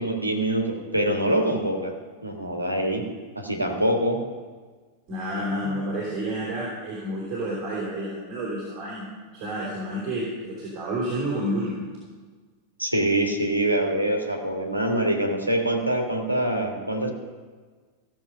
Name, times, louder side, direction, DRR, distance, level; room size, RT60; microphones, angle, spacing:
voice 1, 0.0-1.9 2.2-3.0 3.3-4.2 12.8-17.1, right 1 dB, 85° right, 2 dB, 1.5 m, -24 dB
voice 2, 5.1-11.8, right 1 dB, 35° right, -5 dB, 3.2 m, -30 dB
15.0 x 7.1 x 5.3 m, 1.5 s
figure-of-eight pair, 90°, 0 cm